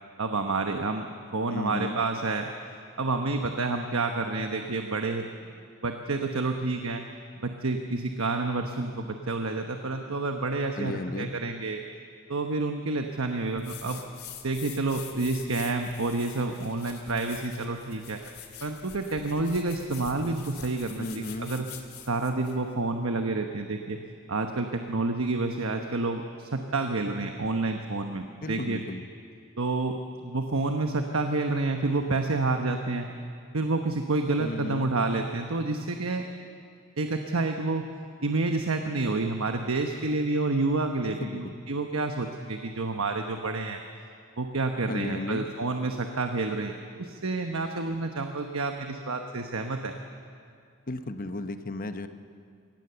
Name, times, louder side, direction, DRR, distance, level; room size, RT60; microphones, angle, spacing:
voice 1, 0.2-1.1 1.3-2.5 3.0-5.3 5.8-7.0 7.3-11.8 12.3-14.0 14.4-18.2 18.6-21.7 22.1-24.0 24.3-28.8 29.6-33.1 33.5-36.2 37.0-37.9 38.2-43.8 44.4-49.9, right 3 dB, 70° right, 5 dB, 1.1 m, -29 dB
voice 2, 1.5-2.0 10.8-11.3 21.0-21.5 28.4-29.1 34.4-34.9 41.0-41.5 44.9-45.5 50.9-52.1, left 2 dB, 40° left, 9 dB, 0.9 m, -34 dB
sound 1, 13.6-22.6, left 9 dB, 85° left, 2.2 m, -46 dB
24.5 x 18.0 x 6.9 m, 2.3 s
head